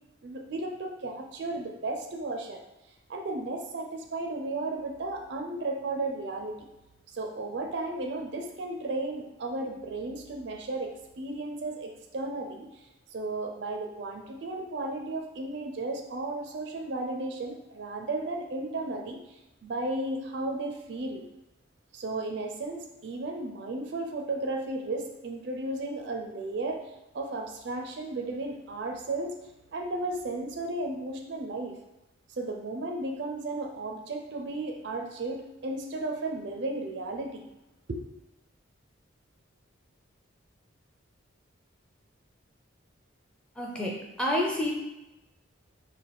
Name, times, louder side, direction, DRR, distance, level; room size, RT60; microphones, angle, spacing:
voice 1, 0.2-2.6 3.1-6.7 7.1-12.7 13.1-19.2 19.6-21.2 21.9-26.8 27.1-29.3 29.7-31.7 32.4-37.4 37.9-38.0, right 2 dB, 55° right, 3 dB, 0.4 m, -34 dB
voice 2, 43.6-43.9 44.2-44.7, left 1 dB, 5° left, -3 dB, 0.5 m, -28 dB
3.9 x 2.5 x 3.3 m, 0.95 s
head